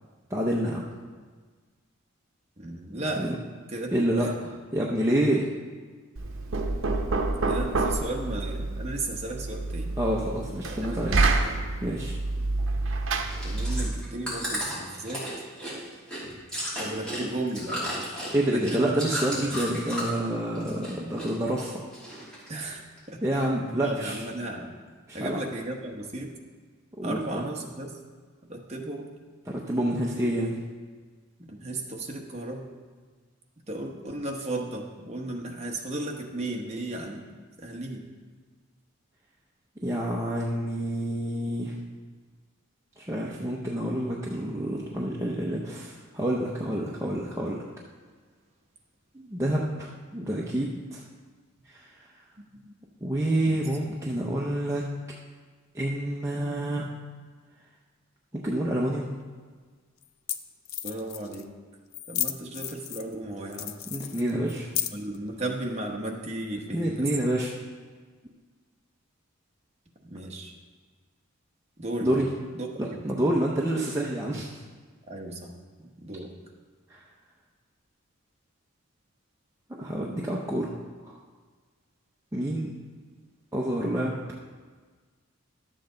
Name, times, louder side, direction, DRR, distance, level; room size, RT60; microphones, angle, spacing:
voice 1, 0.3-0.9 3.2-3.3 3.9-4.3 4.7-5.5 10.0-11.3 11.8-12.2 18.3-21.8 22.4-22.5 23.2-24.2 25.1-25.4 27.0-27.4 29.5-30.6 39.8-41.8 43.0-47.6 49.1-51.0 51.7-52.0 53.0-54.8 55.7-56.9 58.3-59.1 63.9-64.7 66.7-67.5 72.0-72.3 72.8-74.6 76.9-77.0 79.8-80.7 81.0-81.1 82.3-82.7 83.5-84.2, right 1 dB, 15° right, -4 dB, 0.6 m, -28 dB
voice 2, 2.6-3.4 3.7-4.3 7.5-10.0 10.9-11.2 13.4-15.3 16.8-18.1 18.5-19.0 19.3-19.4 22.5-23.5 23.7-24.7 25.1-26.3 27.0-27.9 28.5-29.1 31.5-32.7 33.7-37.2 37.6-38.0 52.6-52.7 53.4-53.7 60.8-61.5 62.1-63.8 64.9-67.1 70.0-70.5 71.8-72.2 72.5-73.0 75.1-75.5 75.8-76.3, right 2 dB, 30° right, 0 dB, 1.0 m, -35 dB
Knock, 6.2-14.1, right 3 dB, 70° right, 0.8 m, -28 dB
Chewing mastication, 13.2-20.3 20.6-21.3 21.6-22.5 23.0-23.1, equal, 5° left, 2.7 m, -34 dB
sound 1, 59.2-59.3 60.0-60.1 60.3-60.4 60.6-61.4 61.9-63.1 63.5-65.2, left 11 dB, 80° left, 0.5 m, -33 dB
11.5 x 7.7 x 3.8 m, 1.5 s
head